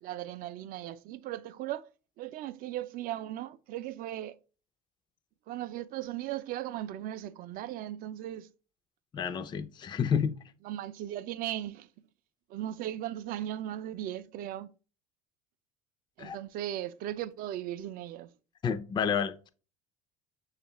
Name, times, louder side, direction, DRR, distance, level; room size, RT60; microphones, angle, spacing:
voice 1, 0.0-1.9 2.2-4.4 5.5-8.5 10.6-11.9 12.5-14.7 16.2-18.3, right 12 dB, 50° right, 0.4 m, -37 dB
voice 2, 9.1-10.4 16.2-16.4 18.6-19.5, left 7 dB, 25° left, 0.4 m, -30 dB
6.3 x 2.4 x 2.9 m
hypercardioid pair, 75°, 18 cm